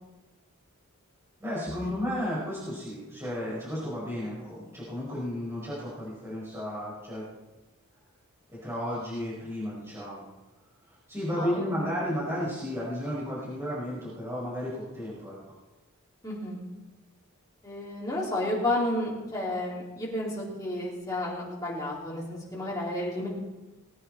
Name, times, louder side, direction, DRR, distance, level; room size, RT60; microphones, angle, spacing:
voice 1, 1.4-7.2 8.5-10.2 10.9-15.4, equal, 10° right, -8 dB, 4.9 m, -33 dB
voice 2, 16.2-16.6 17.6-23.3, left 1 dB, 15° left, -6 dB, 3.8 m, -31 dB
20.0 x 9.2 x 4.5 m, 1.1 s
head